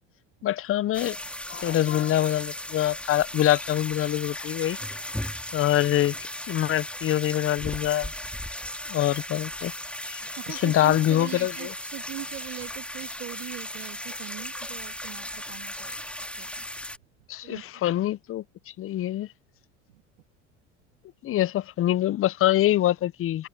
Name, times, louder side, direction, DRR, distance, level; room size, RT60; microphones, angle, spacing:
voice 1, 0.4-1.2 1.5-4.8 5.5-6.2 6.5-8.1 8.9-9.7 10.1-10.2 10.5-11.5 17.3-18.4 18.8-19.3 21.2-23.5, left 13 dB, 35° left, 0.7 m, -24 dB
sound 1, 0.9-17.0, left 1 dB, 5° left, 3.4 m, -36 dB
voice 2, 10.4-16.7 16.9-17.0 17.4-17.6 19.9-20.0, right 20 dB, 80° right, 3.2 m, -41 dB
open air
hypercardioid pair, 85°, 37 cm